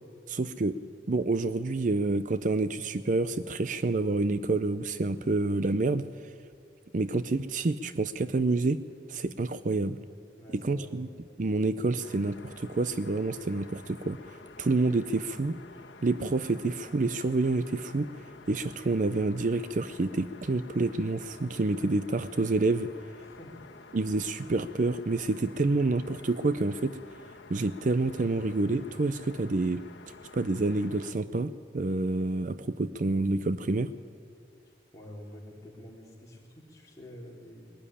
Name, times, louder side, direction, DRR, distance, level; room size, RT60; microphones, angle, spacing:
voice 1, 0.3-0.8 1.1-6.1 6.9-8.8 9.1-10.0 10.6-11.1 11.4-14.2 14.6-15.6 16.0-18.1 18.5-22.9 23.9-27.0 27.5-29.8 30.3-33.9, right 3 dB, 45° right, 13 dB, 0.5 m, -28 dB
voice 2, 10.4-11.0 23.2-23.6 34.9-37.7, left 1 dB, 20° left, -3 dB, 3.6 m, -47 dB
sound 1, 12.0-31.1, left 3 dB, 80° left, 1.3 m, -50 dB
21.0 x 12.5 x 10.0 m, 2.4 s
head